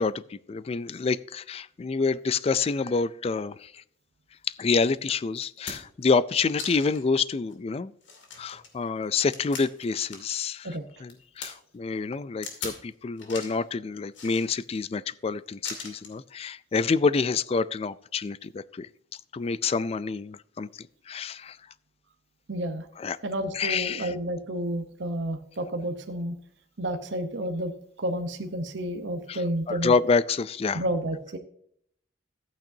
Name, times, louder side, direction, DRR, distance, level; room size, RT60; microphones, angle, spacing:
voice 1, 0.0-3.8 4.5-7.9 8.4-10.7 11.0-18.9 19.3-21.6 23.0-23.2 23.5-24.1 29.3-29.4 29.7-30.8, left 4 dB, 30° left, 18 dB, 0.3 m, -27 dB
sound 1, 4.8-4.9 5.4-6.0 6.6-7.1 7.5-7.6 8.0-10.4 10.7-11.5 12.4-12.8 13.2-13.6 14.1-14.8 15.6-16.2 17.3-17.4, left 5 dB, 70° left, 2.3 m, -40 dB
voice 2, 22.5-22.9 23.2-26.4 26.8-27.7 28.0-30.0 30.7-31.4, right 1 dB, 70° right, 5 dB, 0.9 m, -30 dB
13.5 x 8.8 x 2.7 m, 0.67 s
head